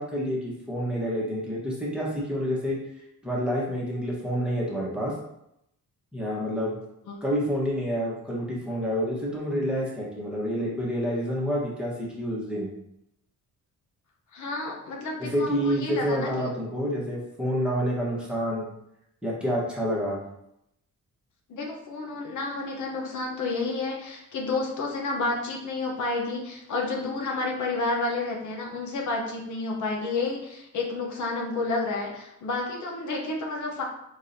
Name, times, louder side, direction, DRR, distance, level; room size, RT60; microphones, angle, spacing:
voice 1, 0.0-2.8 3.2-5.1 6.1-6.8 7.2-12.7 15.2-18.7 19.2-20.2, equal, 5° right, -6 dB, 1.2 m, -28 dB
voice 2, 14.3-16.3 21.5-33.8, left 3 dB, 65° left, 0 dB, 0.9 m, -30 dB
4.7 x 3.7 x 2.7 m, 0.80 s
cardioid pair, 140°, 31 cm